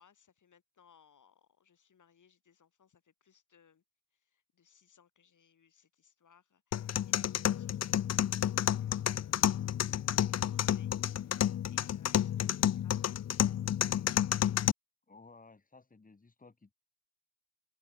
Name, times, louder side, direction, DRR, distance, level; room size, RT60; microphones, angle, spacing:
voice 1, 0.0-3.8 4.1-13.8, left 7 dB, 90° left, 3.8 m, -67 dB
sound 1, 6.7-14.7, left 10 dB, 60° left, 0.5 m, -30 dB
voice 2, 15.1-16.7, left 3 dB, 30° left, 3.1 m, -57 dB
open air
wide cardioid pair, 165°, 30 cm